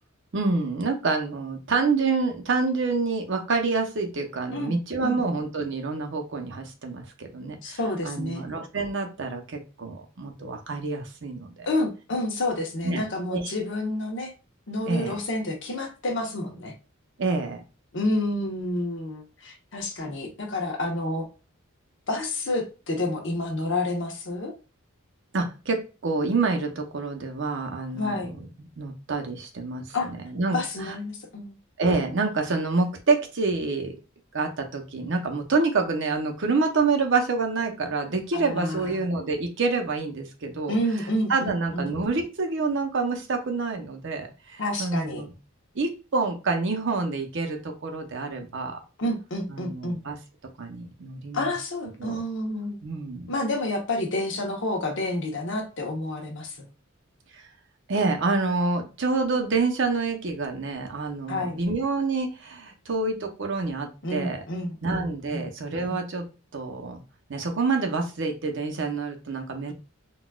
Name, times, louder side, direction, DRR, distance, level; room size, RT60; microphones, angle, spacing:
voice 1, 0.3-7.8 8.0-11.5 12.8-13.5 14.9-15.2 17.2-17.6 25.3-30.0 30.2-30.9 31.8-33.9 34.3-40.8 41.3-45.3 45.7-48.8 49.5-50.2 50.6-51.5 52.0-52.2 52.8-53.3 57.3-57.5 57.9-64.4 64.8-66.2 66.5-67.0 67.3-69.7, right 3 dB, 60° right, 4 dB, 0.7 m, -27 dB
voice 2, 7.6-8.5 11.6-14.3 14.7-16.7 17.9-21.3 22.1-24.5 27.9-28.3 29.9-30.1 30.5-31.5 38.3-39.0 40.7-41.9 44.6-45.2 49.0-50.0 51.3-52.8 53.3-56.7 61.3-61.6 64.0-65.5 65.9-66.0, left 1 dB, 60° left, 2 dB, 0.9 m, -29 dB
3.9 x 2.3 x 2.3 m, 0.32 s
head